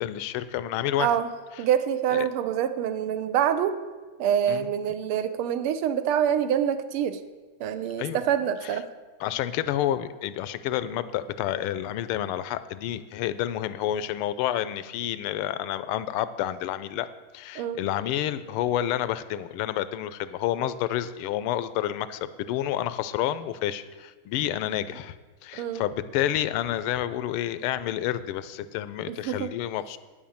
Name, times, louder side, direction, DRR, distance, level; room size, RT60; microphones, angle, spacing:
voice 1, 0.0-1.1 2.1-2.2 4.5-4.7 8.0-8.2 9.2-17.1 17.3-25.1 25.4-30.0, left 12 dB, 85° left, 14 dB, 1.5 m, -29 dB
voice 2, 1.0-1.3 1.6-3.8 4.2-7.2 7.6-8.9 17.5-17.8 25.5-25.8 29.1-29.5, right 9 dB, 85° right, 11 dB, 1.6 m, -26 dB
9.4 x 7.3 x 7.1 m, 1.3 s
omnidirectional pair, 2.4 m